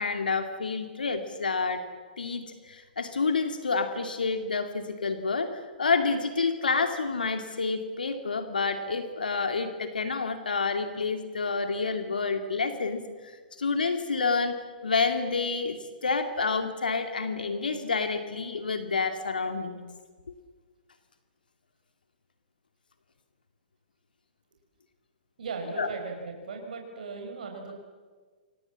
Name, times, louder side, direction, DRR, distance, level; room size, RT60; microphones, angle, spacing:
voice 1, 0.0-1.8 2.2-14.6 14.8-19.8 25.8-25.9, left 4 dB, 75° left, 7 dB, 2.3 m, -29 dB
voice 2, 25.4-27.7, right 4 dB, 60° right, 3 dB, 5.7 m, -37 dB
30.0 x 26.5 x 7.4 m, 1.5 s
figure-of-eight pair, 115°, 5 cm